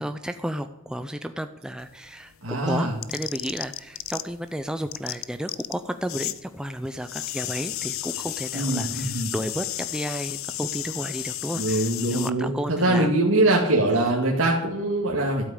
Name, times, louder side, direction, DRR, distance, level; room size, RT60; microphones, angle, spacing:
voice 1, 0.0-13.1 13.9-14.1, equal, 5° right, 8 dB, 0.5 m, -33 dB
sound 1, 1.8-4.5 4.7-6.4 6.7-12.3, left 15 dB, 65° left, 0.6 m, -33 dB
voice 2, 2.4-2.9 8.5-9.3 11.6-15.5, right 2 dB, 60° right, -3 dB, 2.2 m, -23 dB
12.5 x 8.6 x 8.4 m, 0.90 s
head